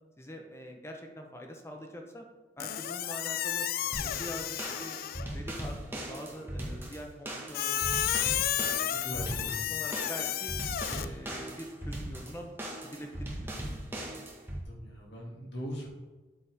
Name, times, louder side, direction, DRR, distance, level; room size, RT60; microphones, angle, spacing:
voice 1, 0.2-2.3 2.6-3.7 4.0-5.0 5.3-8.2 8.6-10.5 10.9-13.9, equal, 15° left, 2 dB, 0.8 m, -44 dB
Squeak, 2.6-5.4 7.5-11.1, left 11 dB, 55° left, 0.4 m, -32 dB
sound 1, 3.9-14.6, right 1 dB, 15° right, 1.5 m, -39 dB
voice 2, 8.9-9.7 14.6-15.9, equal, 70° left, -3 dB, 2.3 m, -40 dB
8.5 x 7.0 x 3.5 m, 1.2 s
head